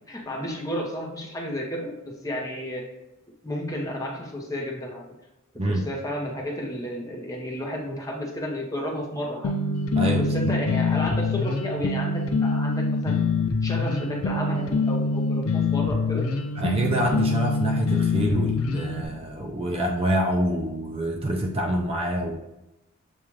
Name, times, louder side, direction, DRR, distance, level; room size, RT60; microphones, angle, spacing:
voice 1, 0.1-2.9 3.4-5.0 5.6-9.5 10.2-13.3 13.6-16.3, equal, 15° left, -1 dB, 0.8 m, -32 dB
sound 1, 9.4-19.0, left 3 dB, 80° left, 0.5 m, -25 dB
voice 2, 10.0-10.4 16.6-22.4, equal, 25° right, 1 dB, 0.4 m, -26 dB
7.0 x 2.4 x 3.1 m, 0.93 s
head